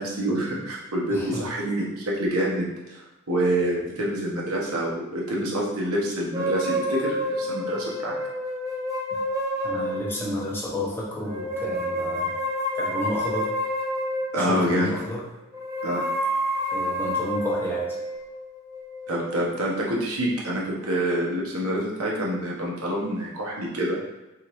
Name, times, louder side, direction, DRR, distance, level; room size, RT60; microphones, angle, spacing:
voice 1, 0.0-8.2 10.1-10.2 14.3-14.9 15.8-16.0 19.1-24.0, right 1 dB, 90° right, -3 dB, 1.1 m, -27 dB
voice 2, 1.1-1.4 9.6-12.4 12.7-13.5 14.4-15.2 16.7-17.9, left 1 dB, 10° left, -6 dB, 1.0 m, -31 dB
sound 1, 6.3-10.5 11.2-14.7 15.5-19.9, equal, 15° right, 0.8 m, -29 dB
3.9 x 3.6 x 3.1 m, 1.1 s
head